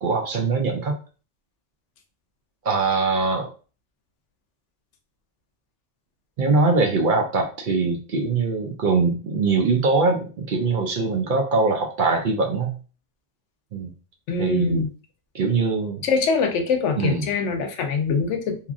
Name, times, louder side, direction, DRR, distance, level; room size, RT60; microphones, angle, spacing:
voice 1, 0.0-0.9 2.6-3.5 6.4-12.8 13.7-13.9 14.4-14.8 15.3-16.0 17.0-17.3, right 3 dB, 60° right, 1 dB, 0.6 m, -22 dB
voice 2, 14.3-14.9 16.0-18.6, left 5 dB, 85° left, 4 dB, 0.9 m, -23 dB
2.8 x 2.4 x 2.4 m, 0.36 s
omnidirectional pair, 1.2 m